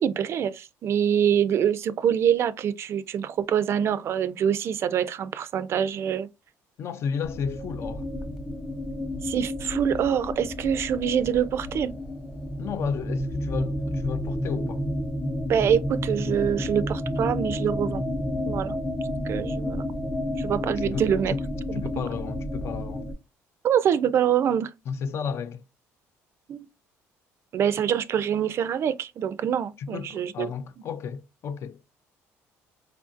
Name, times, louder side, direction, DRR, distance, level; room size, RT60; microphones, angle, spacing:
voice 1, 0.0-6.3 9.2-11.9 15.5-18.1 18.5-18.8 19.3-19.8 20.4-21.3 21.7-21.8 23.6-24.7 26.5-26.7 27.5-30.5, right 9 dB, 50° right, 0.3 m, -25 dB
voice 2, 6.8-8.1 12.6-14.9 20.8-21.4 21.7-23.1 24.9-25.6 29.8-31.8, left 6 dB, 50° left, 0.4 m, -33 dB
sound 1, 7.2-23.1, left 1 dB, 5° left, 0.8 m, -31 dB
4.5 x 2.5 x 2.4 m
cardioid pair, 115°, 6 cm